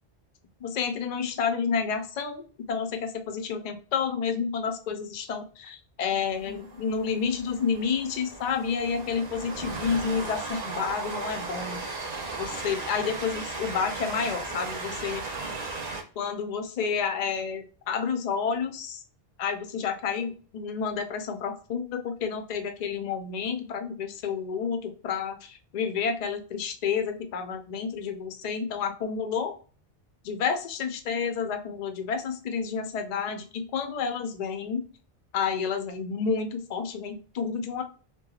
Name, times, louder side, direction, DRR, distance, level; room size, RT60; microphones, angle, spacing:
voice 1, 0.6-11.8 12.4-15.3 16.2-19.0 19.4-29.5 30.2-34.8 35.3-37.8, left 6 dB, 55° left, 6 dB, 0.5 m, -30 dB
Train, 6.3-16.0, right 3 dB, 45° right, 0.8 m, -36 dB
3.1 x 2.2 x 2.3 m, 0.38 s
omnidirectional pair, 1.0 m